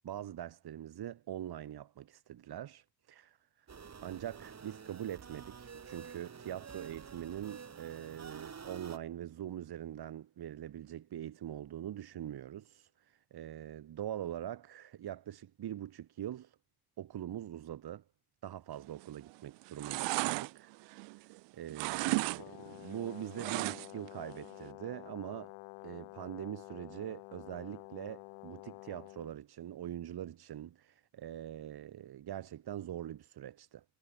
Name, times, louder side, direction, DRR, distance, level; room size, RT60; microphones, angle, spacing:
voice 1, 0.0-3.7 4.0-16.6 17.0-18.0 18.4-20.7 21.1-25.5 25.8-33.8, right 11 dB, 60° right, 4.6 m, -43 dB
sound 1, 3.7-9.0, right 6 dB, 40° right, 6.1 m, -49 dB
sound 2, 18.9-19.3 19.6-21.4 21.7-22.4 22.7-24.1 24.4-24.5, right 26 dB, 80° right, 1.0 m, -35 dB
Brass instrument, 22.3-29.3, left 40 dB or more, 90° left, 2.8 m, -50 dB
supercardioid pair, 70°, 43 cm